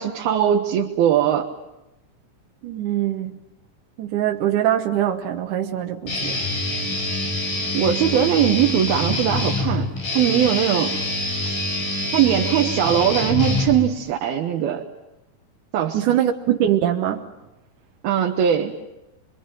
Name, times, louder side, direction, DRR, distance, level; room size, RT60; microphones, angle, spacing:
voice 1, 0.0-1.5 7.7-9.9 10.1-10.9 11.5-11.6 12.1-14.8 15.7-16.2 18.0-18.7, right 10 dB, 85° right, 3.2 m, -20 dB
voice 2, 2.6-3.4 4.0-6.4 15.9-17.3, right 11 dB, 65° right, 2.4 m, -22 dB
Guitar, 6.1-14.1, left 2 dB, 60° left, 6.4 m, -25 dB
25.0 x 24.0 x 9.1 m
omnidirectional pair, 4.2 m